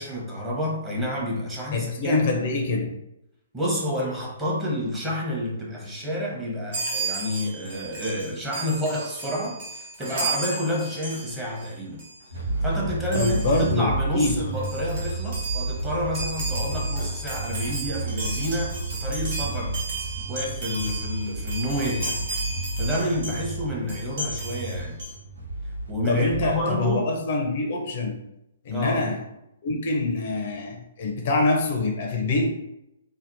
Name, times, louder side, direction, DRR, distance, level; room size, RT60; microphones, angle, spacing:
voice 1, 0.0-2.2 3.5-12.0 12.3-13.4 13.7-19.8 20.3-22.2 22.8-25.0 25.9-27.0 28.7-29.0, equal, 10° right, -5 dB, 0.8 m, -29 dB
voice 2, 1.7-3.0 13.1-14.4 23.8-23.9 26.1-28.2 28.6-29.2 29.6-32.6, left 3 dB, 50° left, 2 dB, 0.4 m, -25 dB
Chime, 6.7-11.7 12.0-12.2 13.1-13.7 14.3-14.4 14.5-23.5 23.9-25.1, right 3 dB, 55° right, 0.9 m, -34 dB
sound 1, 12.3-26.5, right 2 dB, 90° right, 0.7 m, -31 dB
2.7 x 2.0 x 2.6 m, 0.84 s
hypercardioid pair, 130°, 0 cm